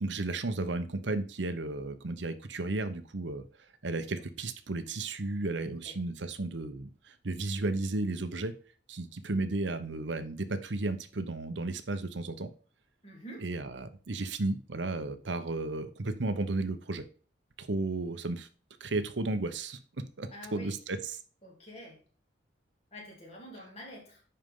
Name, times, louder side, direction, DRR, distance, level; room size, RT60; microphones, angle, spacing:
voice 1, 0.0-3.4 3.8-8.5 8.9-12.5 13.4-17.0 17.6-18.5 18.8-21.2, right 2 dB, 75° right, 10 dB, 0.8 m, -34 dB
voice 2, 13.0-13.5 20.3-20.8 21.4-22.0 22.9-24.2, equal, 35° left, 0 dB, 2.6 m, -47 dB
10.5 x 4.4 x 3.7 m, 0.39 s
head